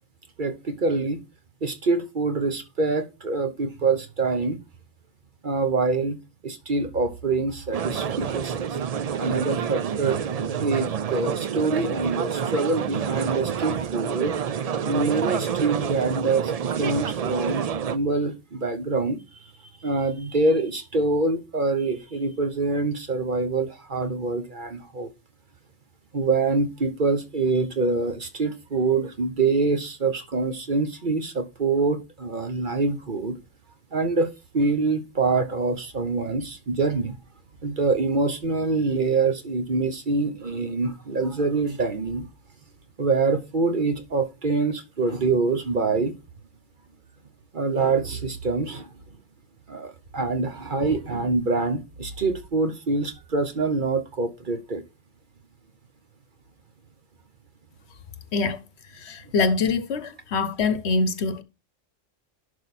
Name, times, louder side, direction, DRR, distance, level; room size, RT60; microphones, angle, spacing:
voice 1, 0.4-1.2 1.6-4.6 5.4-6.2 6.4-8.8 9.2-14.4 14.8-19.2 19.8-25.1 26.1-33.4 33.9-37.2 37.6-42.2 43.0-46.1 47.5-48.9 49.7-54.8, right 3 dB, 45° right, 1.1 m, -25 dB
sound 1, 7.7-18.0, right 7 dB, 70° right, 0.3 m, -28 dB
voice 2, 58.3-58.6 58.9-61.4, left 4 dB, 65° left, 1.0 m, -24 dB
11.5 x 4.9 x 4.2 m
omnidirectional pair, 1.3 m